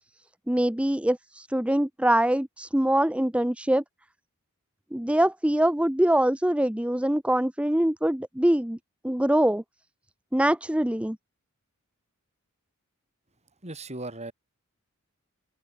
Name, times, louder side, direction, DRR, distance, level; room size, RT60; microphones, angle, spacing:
voice 1, 0.5-3.8 4.9-8.8 9.0-9.6 10.3-11.2, right 1 dB, 5° right, 0.7 m, -24 dB
voice 2, 13.6-14.3, right 2 dB, 30° right, 7.3 m, -37 dB
open air
head